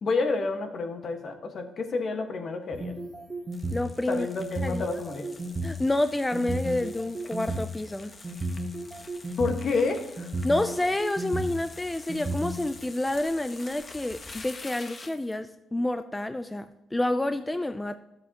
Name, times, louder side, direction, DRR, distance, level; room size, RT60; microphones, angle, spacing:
voice 1, 0.0-2.9 4.1-5.3 9.4-10.3, left 3 dB, 55° left, 6 dB, 1.4 m, -29 dB
sound 1, 2.7-3.9 4.4-5.7 6.3-7.6 8.2-9.6 10.2-11.6 12.1-12.7, right 2 dB, 25° right, 1.1 m, -33 dB
sound 2, 3.5-15.4, left 3 dB, 30° left, 0.9 m, -47 dB
voice 2, 3.7-4.3 4.6-4.9 5.6-8.1 10.4-18.0, left 1 dB, 15° left, 10 dB, 0.4 m, -29 dB
12.5 x 7.7 x 2.9 m, 0.94 s
cardioid pair, 90°, 0 cm